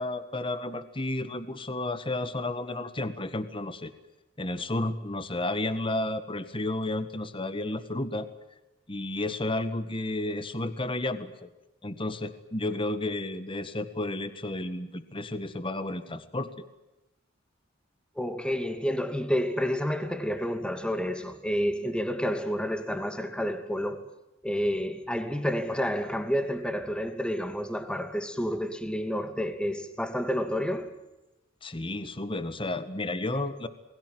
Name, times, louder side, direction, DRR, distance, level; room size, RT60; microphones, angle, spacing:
voice 1, 0.0-3.9 4.4-8.3 8.9-11.5 11.8-16.5 31.6-33.7, left 2 dB, 25° left, 1.6 m, -32 dB
voice 2, 18.2-24.0 24.4-30.9, equal, 5° left, 2.5 m, -29 dB
28.5 x 21.5 x 7.8 m
head